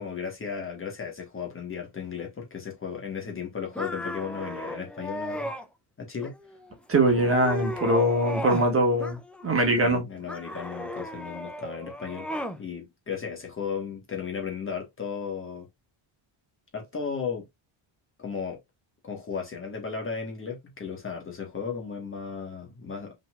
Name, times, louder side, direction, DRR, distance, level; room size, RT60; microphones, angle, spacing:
voice 1, 0.0-5.5 6.0-6.3 9.7-12.3 12.6-15.7 16.7-17.4 18.2-18.6 19.0-23.1, left 6 dB, 25° left, 1.3 m, -35 dB
sound 1, 3.7-5.6 6.2-6.7 7.1-8.7 9.0-9.7 10.3-12.6, equal, 5° left, 0.4 m, -35 dB
voice 2, 6.9-9.2 9.4-10.0, right 1 dB, 25° right, 1.6 m, -22 dB
5.4 x 3.9 x 2.3 m
cardioid pair, 180°, 50 cm